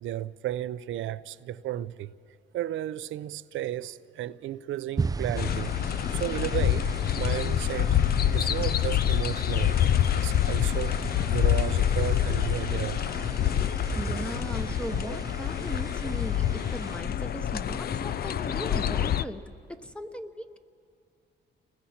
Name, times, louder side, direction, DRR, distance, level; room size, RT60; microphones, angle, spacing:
voice 1, 0.0-2.1 2.5-5.8 6.1-6.9 7.2-8.0 8.3-9.8 10.1-11.0 11.3-13.0, right 12 dB, 80° right, 0.6 m, -33 dB
sound 1, 5.0-17.0, right 4 dB, 20° right, 0.4 m, -38 dB
sound 2, 5.4-19.2, left 10 dB, 50° left, 0.6 m, -26 dB
voice 2, 13.9-20.6, equal, 5° left, 1.1 m, -38 dB
30.0 x 21.0 x 4.4 m
cardioid pair, 90°, 20 cm